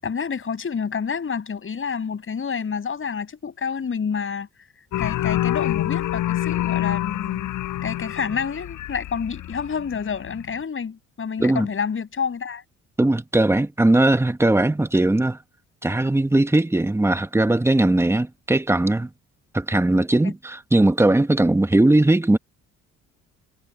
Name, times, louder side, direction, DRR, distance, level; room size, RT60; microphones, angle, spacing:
voice 1, 0.0-4.5 5.0-7.5 7.8-12.6 20.2-20.3, left 6 dB, 45° left, 7.8 m, -28 dB
sound 1, 4.9-10.5, left 13 dB, 85° left, 7.4 m, -26 dB
voice 2, 13.0-15.4 15.8-19.1 19.5-22.4, right 2 dB, 10° right, 1.2 m, -19 dB
cardioid pair, 90°, 30 cm